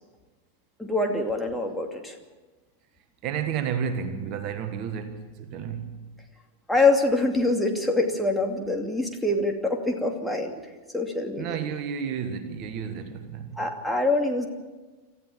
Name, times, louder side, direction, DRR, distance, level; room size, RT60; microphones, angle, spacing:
voice 1, 0.8-2.2 6.7-10.5 10.9-11.6 13.6-14.5, left 2 dB, 5° left, 2.6 m, -25 dB
voice 2, 3.2-6.1 11.4-13.6, right 7 dB, 40° right, 1.5 m, -32 dB
27.0 x 14.5 x 7.5 m
figure-of-eight pair, 90°, 0 cm